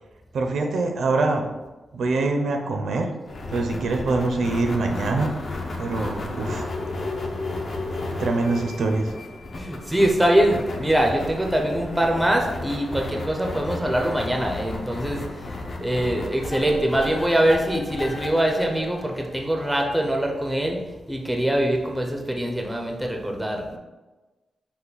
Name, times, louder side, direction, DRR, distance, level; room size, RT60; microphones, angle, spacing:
voice 1, 0.3-1.5 1.9-3.1 3.5-5.3 5.8-6.7 8.1-9.1, right 3 dB, 70° right, 3 dB, 0.5 m, -24 dB
sound 1, 3.3-19.8, left 2 dB, 40° left, 0.6 m, -33 dB
voice 2, 9.5-20.8 21.1-23.8, right 1 dB, 5° right, 1 dB, 0.5 m, -23 dB
5.6 x 2.2 x 3.9 m, 1.1 s
wide cardioid pair, 180°, 0 cm